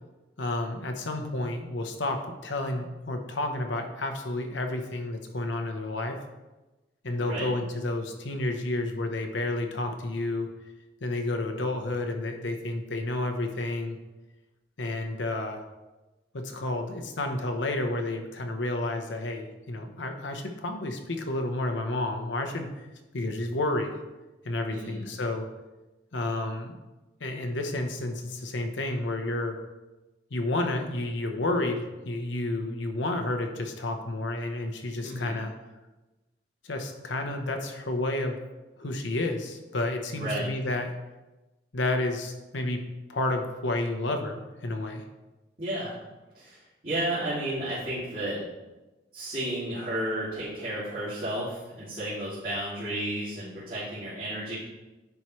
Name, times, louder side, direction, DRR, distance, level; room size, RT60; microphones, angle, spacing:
voice 1, 0.4-6.2 7.0-10.5 11.0-14.0 14.8-15.6 16.3-22.7 23.1-23.9 24.4-25.5 26.1-26.8 27.2-29.6 30.3-35.5 36.6-38.4 38.8-40.9 41.7-42.8 43.1-45.0, left 2 dB, 90° left, 5 dB, 0.9 m, -30 dB
voice 2, 24.7-25.0 35.0-35.4 40.1-40.5 45.6-46.0 46.3-48.4 49.1-54.5, right 1 dB, 50° right, -12 dB, 2.6 m, -32 dB
10.0 x 4.8 x 3.2 m, 1.1 s
head